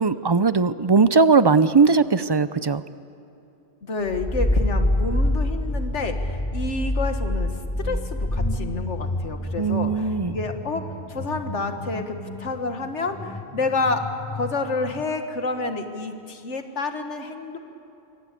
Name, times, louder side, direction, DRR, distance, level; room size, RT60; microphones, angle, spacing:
voice 1, 0.0-2.8 9.6-10.3, right 4 dB, 30° right, 14 dB, 0.4 m, -19 dB
voice 2, 3.8-7.5 7.8-10.8 11.1-14.0 14.3-17.6, left 3 dB, 90° left, 6 dB, 2.0 m, -29 dB
sound 1, 4.1-15.0, left 1 dB, 15° left, 1.3 m, -28 dB
27.0 x 23.5 x 8.4 m, 2.8 s
omnidirectional pair, 1.2 m